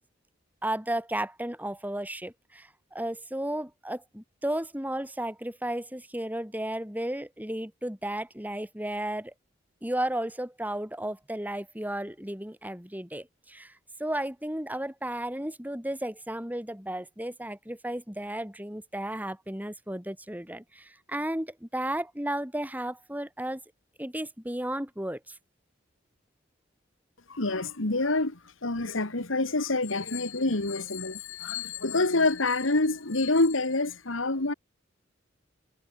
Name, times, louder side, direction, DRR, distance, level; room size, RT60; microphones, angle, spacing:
voice 1, 0.6-9.3 9.8-13.7 14.0-23.6 24.0-25.4, right 1 dB, 10° right, 4.1 m, -34 dB
voice 2, 27.3-34.5, left 2 dB, 80° left, 2.3 m, -27 dB
head